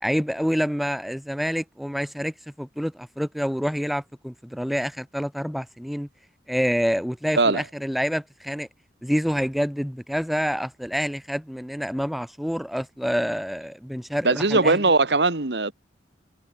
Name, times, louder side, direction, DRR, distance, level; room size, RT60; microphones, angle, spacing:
voice 1, 0.0-6.1 6.5-8.7 9.0-14.8, equal, ahead, 0.7 m, -27 dB
voice 2, 14.2-15.7, right 3 dB, 65° right, 1.6 m, -20 dB
head